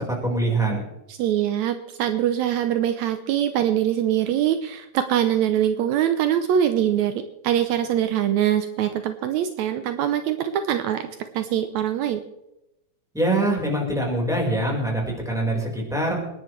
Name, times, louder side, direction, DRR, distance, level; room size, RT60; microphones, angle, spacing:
voice 1, 0.1-0.8 13.1-16.2, right 1 dB, ahead, -2 dB, 4.6 m, -24 dB
voice 2, 1.1-11.1 11.3-12.2, right 10 dB, 80° right, 9 dB, 2.0 m, -23 dB
28.0 x 10.5 x 3.3 m, 0.91 s
omnidirectional pair, 3.4 m